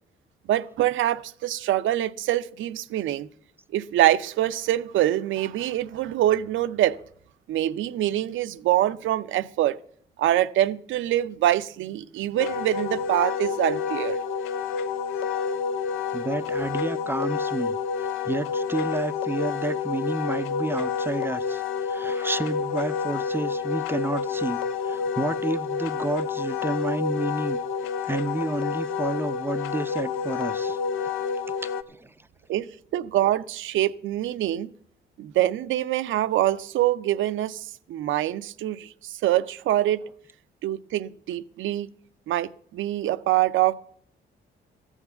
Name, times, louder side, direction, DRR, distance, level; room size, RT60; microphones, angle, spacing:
voice 1, 0.5-3.3 3.7-7.0 7.5-9.8 10.2-14.2 32.5-34.7 35.2-40.0 40.6-41.9 42.3-43.7, right 13 dB, 75° right, 0.6 m, -25 dB
Wind instrument woodwind instrument, 12.4-31.8, left 6 dB, 85° left, 0.7 m, -29 dB
voice 2, 16.1-27.6 28.0-30.8 31.6-32.1, right 2 dB, 10° right, 0.5 m, -30 dB
14.0 x 7.3 x 6.8 m
cardioid pair, 90°, 20 cm